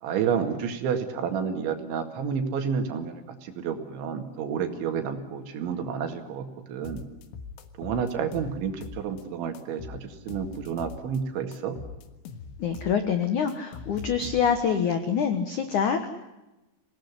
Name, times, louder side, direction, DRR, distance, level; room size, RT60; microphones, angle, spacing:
voice 1, 0.0-7.0 7.8-11.8, right 7 dB, 70° right, 6 dB, 4.3 m, -30 dB
sound 1, 6.8-9.2 9.5-11.2 11.5-14.7, left 5 dB, 90° left, 4.1 m, -42 dB
voice 2, 12.6-16.1, left 7 dB, 75° left, 8 dB, 1.8 m, -25 dB
26.5 x 18.5 x 9.9 m, 1.0 s
omnidirectional pair, 5.6 m